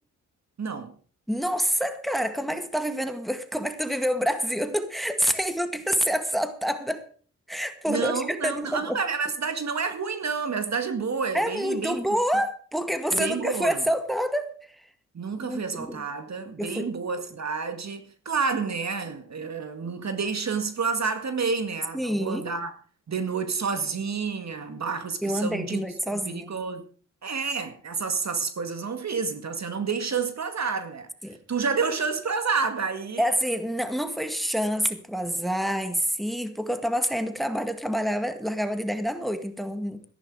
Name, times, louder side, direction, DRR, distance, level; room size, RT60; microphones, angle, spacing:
voice 1, 0.6-0.9 7.9-12.0 13.1-13.8 15.1-22.7 23.1-25.8 26.1-26.9 27.2-31.1 31.5-33.2, right 5 dB, 50° right, 2.0 m, -29 dB
voice 2, 1.3-7.1 7.5-9.0 11.3-14.9 15.4-16.0 16.6-16.9 21.9-22.5 25.2-26.5 31.2-31.4 33.2-40.0, equal, ahead, 1.9 m, -27 dB
14.0 x 11.0 x 4.9 m
supercardioid pair, 55°, 34 cm